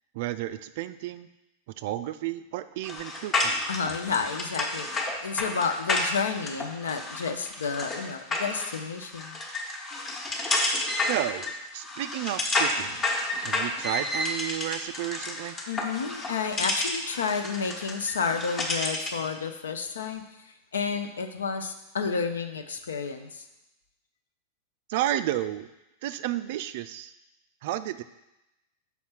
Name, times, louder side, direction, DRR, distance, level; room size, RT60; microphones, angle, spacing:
voice 1, 0.1-1.3 1.8-3.6 11.1-13.0 13.4-15.6 24.9-25.7 26.0-27.1 27.6-28.0, right 13 dB, 50° right, 13 dB, 0.3 m, -32 dB
sound 1, 2.8-19.2, left 2 dB, 20° left, 1.1 m, -31 dB
voice 2, 3.7-9.4 15.7-20.2 20.7-23.5, left 5 dB, 65° left, 7 dB, 0.6 m, -31 dB
5.6 x 4.2 x 6.0 m, 0.93 s
figure-of-eight pair, 90°, 0 cm